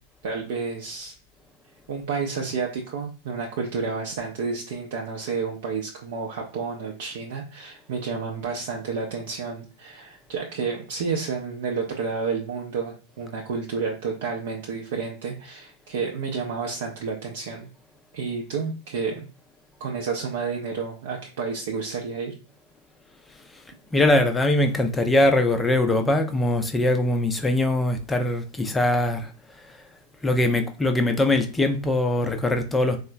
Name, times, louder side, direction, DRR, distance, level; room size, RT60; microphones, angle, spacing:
voice 1, 0.2-1.1 1.9-17.7 18.1-19.3 19.8-22.3, right 5 dB, 55° right, 0.5 m, -30 dB
voice 2, 23.9-29.3 30.2-33.0, left 1 dB, 10° left, 0.4 m, -22 dB
3.6 x 2.0 x 2.6 m
figure-of-eight pair, 90°, 0 cm